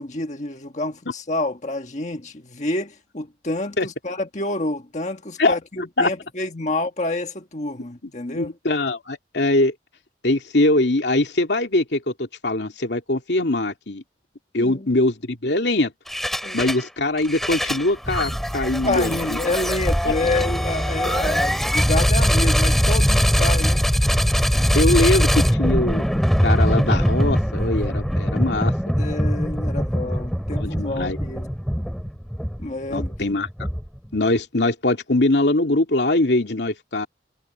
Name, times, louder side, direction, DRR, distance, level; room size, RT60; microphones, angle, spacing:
voice 1, 0.0-8.5 14.6-14.9 16.4-16.6 18.8-23.8 29.0-31.5 32.6-33.1, left 2 dB, 40° left, 1.5 m, -28 dB
voice 2, 8.0-9.7 10.2-14.0 14.5-15.9 16.5-19.4 20.0-20.1 24.7-26.1 26.4-28.7 30.6-31.2 32.9-33.7 34.1-37.1, left 2 dB, 80° left, 2.5 m, -22 dB
sound 1, 16.1-16.8 17.2-34.1, equal, ahead, 2.6 m, -21 dB
head